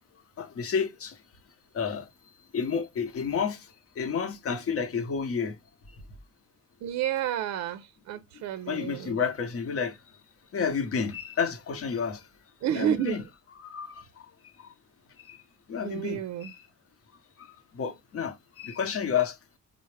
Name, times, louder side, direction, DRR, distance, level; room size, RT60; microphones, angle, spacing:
voice 1, 0.4-1.2 1.7-2.1 2.5-3.7 4.0-5.6 8.7-10.0 10.5-12.2 12.7-13.2 13.6-14.2 14.6-14.7 15.2-15.4 15.7-16.6 17.4-17.5 17.7-19.4, left 6 dB, 50° left, 0.9 m, -30 dB
voice 2, 6.8-9.2 12.6-13.2 15.8-16.5, right 11 dB, 65° right, 0.5 m, -30 dB
4.2 x 2.0 x 3.2 m
cardioid pair, 100°, 29 cm